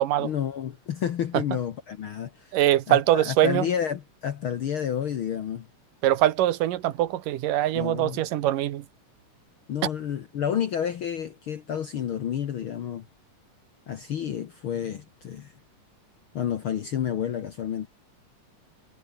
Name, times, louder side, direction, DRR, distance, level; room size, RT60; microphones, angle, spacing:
voice 1, 0.2-2.5 2.9-5.7 7.7-8.2 9.7-13.0 13.9-15.5 16.3-17.9, left 9 dB, 60° left, 1.4 m, -30 dB
voice 2, 2.5-3.6 6.0-8.8, right 13 dB, 80° right, 2.8 m, -23 dB
omnidirectional pair, 3.8 m